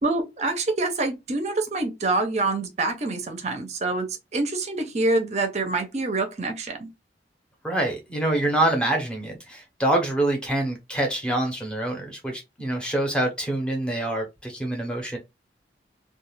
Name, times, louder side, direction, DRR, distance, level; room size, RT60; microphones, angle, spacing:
voice 1, 0.0-6.9, right 2 dB, 40° right, 0.6 m, -26 dB
voice 2, 7.6-15.2, right 1 dB, 5° left, 0.8 m, -26 dB
2.4 x 2.3 x 3.1 m
head